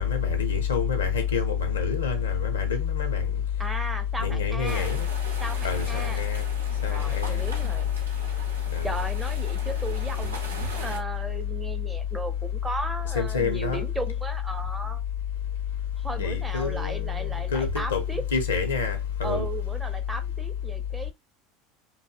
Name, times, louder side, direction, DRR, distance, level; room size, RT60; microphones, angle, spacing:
voice 1, 0.0-3.4 4.2-5.1 5.6-6.4 6.8-7.5 8.7-9.1 13.0-13.8 16.2-18.0 18.3-19.4, left 6 dB, 75° left, 0.6 m, -26 dB
voice 2, 3.6-4.9 5.4-6.2 6.9-7.9 8.8-15.0 16.0-18.2 19.2-21.1, right 2 dB, 10° right, 0.5 m, -36 dB
sound 1, 4.6-11.0, right 2 dB, 80° right, 0.6 m, -40 dB
2.6 x 2.1 x 2.3 m
figure-of-eight pair, 75°, 0 cm